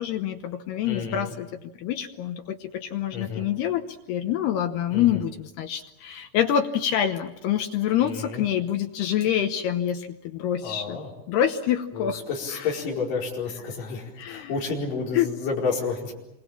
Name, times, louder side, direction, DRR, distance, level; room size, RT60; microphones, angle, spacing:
voice 1, 0.0-1.5 1.8-11.0 11.3-12.2 12.5-12.7 14.2-14.5 15.1-15.3, left 10 dB, 75° left, 6 dB, 2.5 m, -26 dB
voice 2, 0.8-1.3 3.1-3.5 4.9-5.2 8.0-8.4 10.6-11.1 11.9-16.1, left 4 dB, 45° left, -3 dB, 6.1 m, -30 dB
28.0 x 24.5 x 7.4 m, 0.92 s
omnidirectional pair, 5.8 m